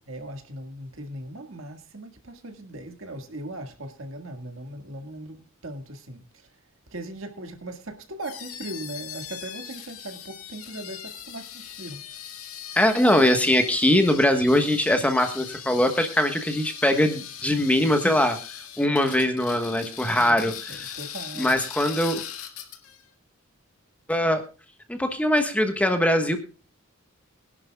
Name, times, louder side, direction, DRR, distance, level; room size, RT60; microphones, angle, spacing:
voice 1, 0.1-6.5 6.9-12.0 20.1-21.6, right 1 dB, 65° right, 1.9 m, -39 dB
sound 1, 8.2-23.0, left 9 dB, 90° left, 1.8 m, -39 dB
voice 2, 12.7-18.4 18.8-20.9 21.4-22.2 24.1-24.4 24.9-26.4, left 1 dB, 5° left, 1.3 m, -22 dB
22.0 x 11.0 x 2.3 m
head